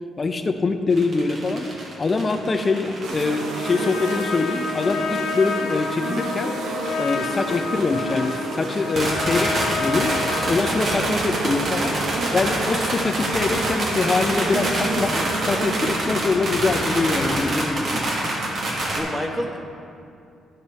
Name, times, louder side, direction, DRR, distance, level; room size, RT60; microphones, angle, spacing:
voice 1, 0.0-1.7 2.0-6.6 7.0-10.1 10.5-18.1, left 3 dB, 30° left, 7 dB, 0.6 m, -24 dB
sound 1, 0.9-19.0, right 1 dB, 55° right, 1.8 m, -27 dB
sound 2, 3.0-16.0, right 4 dB, 75° right, 0.7 m, -32 dB
Trumpet, 3.4-11.0, left 4 dB, 90° left, 0.9 m, -29 dB
voice 2, 16.7-17.7 18.6-19.6, equal, 20° right, 1 dB, 1.2 m, -32 dB
13.5 x 5.2 x 4.2 m, 2.6 s
cardioid pair, 90°, 0 cm